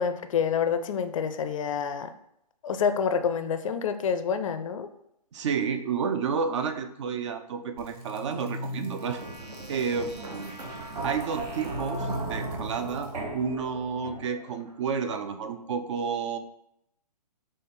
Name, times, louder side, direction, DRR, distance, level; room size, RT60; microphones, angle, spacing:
voice 1, 0.0-2.1 2.6-4.9, left 6 dB, 50° left, 10 dB, 0.4 m, -27 dB
voice 2, 5.3-9.3 9.7-10.5 11.0-16.4, right 6 dB, 45° right, 9 dB, 0.4 m, -31 dB
sound 1, 7.8-14.5, right 2 dB, 70° right, 1.0 m, -36 dB
4.1 x 3.3 x 3.8 m, 0.79 s
hypercardioid pair, 135°, 21 cm